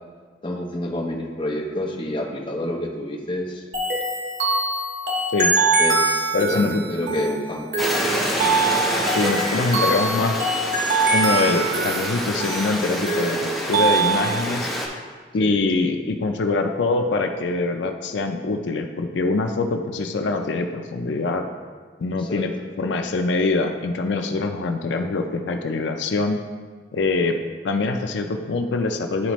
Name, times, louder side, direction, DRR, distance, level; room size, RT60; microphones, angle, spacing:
voice 1, 0.4-3.6 5.8-7.7 15.4-15.5 22.1-22.4, left 1 dB, 30° left, 0 dB, 0.7 m, -28 dB
sound 1, 3.7-14.4, right 3 dB, 90° right, 1.5 m, -23 dB
voice 2, 6.3-6.8 9.1-10.4 11.1-14.7 15.3-21.5 22.0-26.4 26.9-27.4 27.6-29.3, left 3 dB, 80° left, 5 dB, 0.4 m, -24 dB
Stream, 7.8-14.9, equal, ahead, 0.9 m, -27 dB
10.5 x 4.1 x 3.0 m, 1.6 s
head